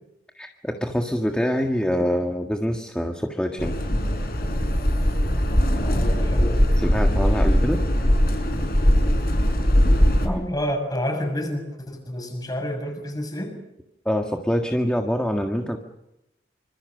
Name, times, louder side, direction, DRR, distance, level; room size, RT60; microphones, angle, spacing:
voice 1, 0.4-3.7 6.8-7.8 10.2-10.5 14.1-15.8, equal, 5° left, 3 dB, 1.7 m, -25 dB
sound 1, 3.6-10.3, equal, 50° left, 6.0 m, -20 dB
voice 2, 5.8-6.8 10.2-13.6, equal, 20° left, 5 dB, 6.9 m, -29 dB
27.5 x 26.0 x 6.7 m, 0.86 s
head